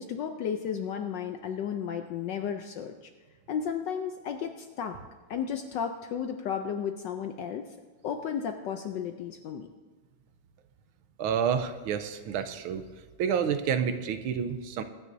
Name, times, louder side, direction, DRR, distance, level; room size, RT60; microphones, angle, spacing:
voice 1, 0.0-2.9 3.5-5.0 5.3-7.7 8.0-9.7, left 7 dB, 70° left, 6 dB, 1.1 m, -33 dB
voice 2, 11.2-12.8 13.2-14.8, right 7 dB, 80° right, 9 dB, 1.6 m, -29 dB
22.0 x 9.6 x 2.7 m, 1.3 s
omnidirectional pair, 2.4 m